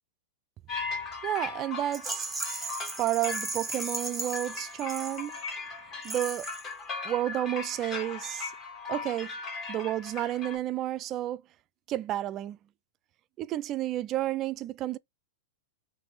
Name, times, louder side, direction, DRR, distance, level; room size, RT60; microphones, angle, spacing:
sound 1, 0.7-10.6, left 4 dB, 25° left, 1.2 m, -38 dB
voice 1, 1.2-2.3 3.0-5.4 6.0-6.5 7.0-8.5 8.9-9.3 9.7-11.4 11.9-12.6 13.4-15.0, right 13 dB, 30° right, 0.3 m, -31 dB
Rattle, 1.9-5.6 6.0-6.7, right 3 dB, 5° right, 0.9 m, -37 dB
3.3 x 3.2 x 4.2 m
supercardioid pair, 145°, 0 cm